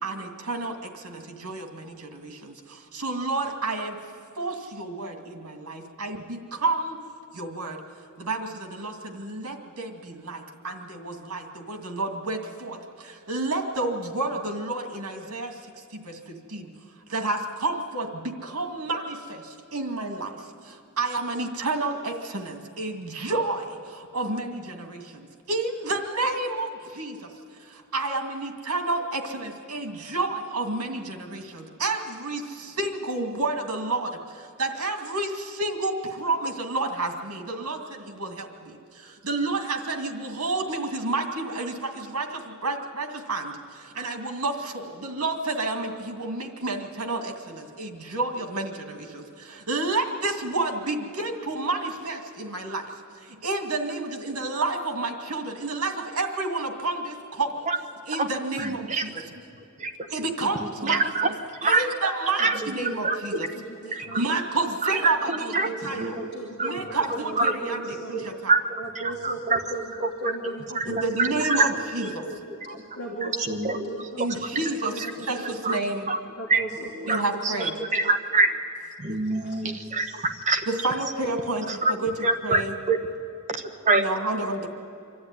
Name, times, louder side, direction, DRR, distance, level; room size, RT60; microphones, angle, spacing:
voice 1, 0.0-4.0 4.4-7.0 7.3-7.8 8.2-15.6 15.9-16.7 17.1-27.3 27.6-52.9 53.2-57.7 58.1-59.2 60.1-61.3 61.6-63.5 64.1-65.5 65.8-66.1 66.6-68.6 70.9-72.2 74.2-76.1 77.1-77.7 80.7-82.1 82.4-82.7 83.9-84.7, right 2 dB, 75° right, 4 dB, 2.3 m, -30 dB
voice 2, 58.6-59.0 59.8-59.9 60.8-61.3 61.6-62.6 63.0-64.2 64.8-65.7 66.0-66.3 66.6-66.7 67.4-67.5 68.1-68.2 68.5-69.6 70.0-71.7 72.0-72.4 72.7-72.8 73.2-74.3 74.8-74.9 75.6-75.8 76.1-76.2 76.5-76.6 77.1-78.5 79.0-80.6 81.7-81.9 82.2-83.0 83.5-84.0, right 3 dB, 35° right, 5 dB, 1.3 m, -26 dB
voice 3, 62.4-63.0 63.5-64.2 65.4-68.1 68.8-71.6 72.0-72.1 72.8-74.6 74.9-75.8 76.4-77.9 79.1-80.4, right 2 dB, 55° left, -2 dB, 2.6 m, -38 dB
25.5 x 12.5 x 9.8 m, 2.5 s
head